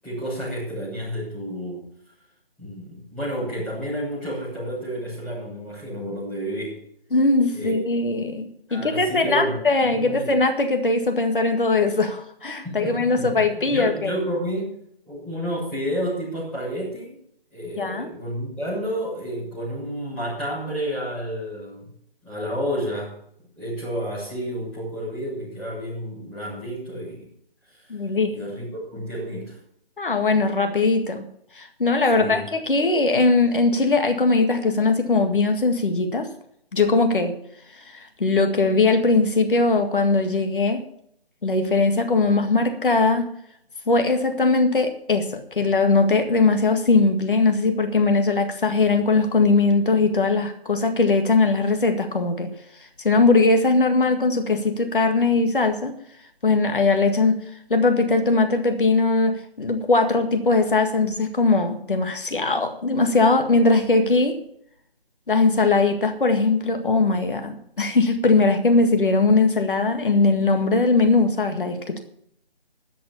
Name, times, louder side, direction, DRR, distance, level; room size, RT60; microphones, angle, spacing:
voice 1, 0.0-1.9 2.6-6.8 7.5-7.8 8.7-9.6 9.9-10.2 12.6-14.7 15.0-17.1 17.5-21.9 22.2-23.2 23.5-27.3 27.7-28.0 28.3-28.7 28.9-29.6 32.1-32.5, equal, 5° left, -11 dB, 7.1 m, -30 dB
voice 2, 7.1-14.1 17.8-18.1 27.9-28.4 30.0-31.3 31.6-36.3 36.7-37.3 37.9-40.8 41.4-43.3 43.9-52.5 53.0-55.9 56.4-57.4 57.7-64.4 65.3-72.0, left 3 dB, 60° left, 6 dB, 1.9 m, -20 dB
13.5 x 7.8 x 7.0 m, 0.69 s
figure-of-eight pair, 155°, 30 cm